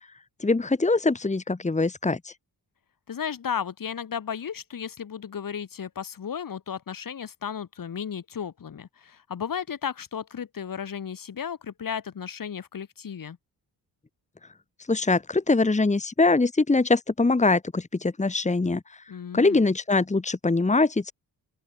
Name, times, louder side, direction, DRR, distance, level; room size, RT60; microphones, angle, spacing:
voice 1, 0.4-2.3 14.9-19.0 19.3-21.1, left 3 dB, 15° left, 2.8 m, -23 dB
voice 2, 3.1-13.4 19.1-19.6, left 7 dB, 55° left, 5.3 m, -34 dB
open air
wide cardioid pair, 165°, 41 cm